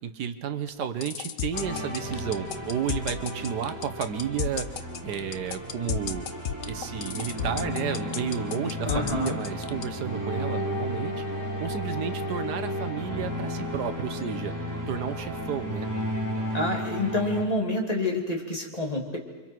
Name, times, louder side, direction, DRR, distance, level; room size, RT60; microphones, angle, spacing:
voice 1, 0.0-6.3 6.7-14.5 14.9-15.9, right 8 dB, 85° right, 10 dB, 1.6 m, -32 dB
sound 1, 0.7-9.8, left 9 dB, 60° left, 1.1 m, -32 dB
sound 2, 1.5-17.5, equal, 10° right, 3.7 m, -33 dB
voice 2, 8.8-9.4 16.5-19.2, left 1 dB, 25° left, 0 dB, 2.9 m, -28 dB
29.0 x 24.5 x 4.7 m, 1.2 s
omnidirectional pair, 1.7 m